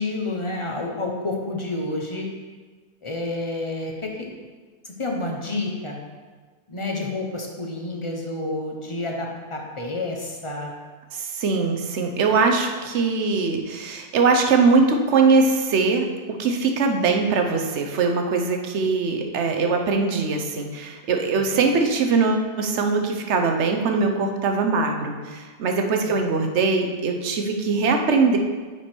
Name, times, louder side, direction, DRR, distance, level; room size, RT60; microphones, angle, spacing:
voice 1, 0.0-2.3 3.0-4.5 4.8-6.0 6.7-10.7 26.1-26.2, left 2 dB, 25° left, 0 dB, 0.7 m, -29 dB
voice 2, 11.1-16.0 16.4-28.4, right 4 dB, 55° right, 4 dB, 0.9 m, -21 dB
9.2 x 4.8 x 4.4 m, 1.4 s
omnidirectional pair, 1.7 m